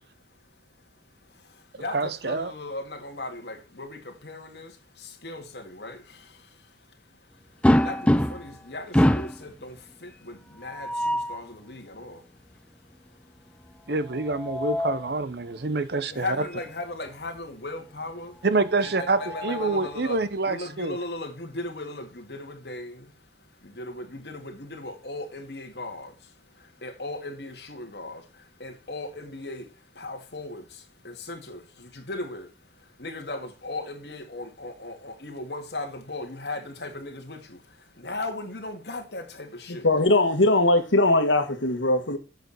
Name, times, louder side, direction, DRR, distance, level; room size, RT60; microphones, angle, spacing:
voice 1, 1.2-13.9 16.1-18.5 18.8-39.9, left 2 dB, 60° left, 2.1 m, -38 dB
voice 2, 1.9-2.5 13.9-16.4 18.4-21.0, right 3 dB, 60° right, 0.8 m, -26 dB
sound 1, 7.6-8.6 8.9-9.4 10.6-11.4 14.1-15.1 16.5-16.7 17.1-17.2 18.7-19.9, equal, 5° left, 0.4 m, -25 dB
voice 3, 39.7-42.2, left 2 dB, 85° left, 1.6 m, -21 dB
8.1 x 6.8 x 4.2 m
head